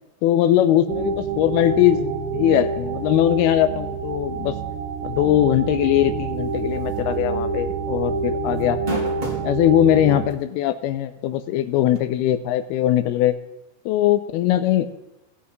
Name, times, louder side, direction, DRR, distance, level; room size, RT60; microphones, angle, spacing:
voice 1, 0.2-4.6 5.0-8.8 9.4-13.3 13.9-14.9, left 12 dB, 80° left, 11 dB, 2.3 m, -20 dB
sound 1, 0.9-10.3, right 4 dB, 75° right, 2.9 m, -27 dB
sound 2, 6.9-7.1 7.5-7.6 8.6-9.5 10.3-10.4 11.9-12.0, right 2 dB, 25° right, 0.9 m, -29 dB
16.5 x 8.4 x 3.1 m, 0.96 s
omnidirectional pair, 4.8 m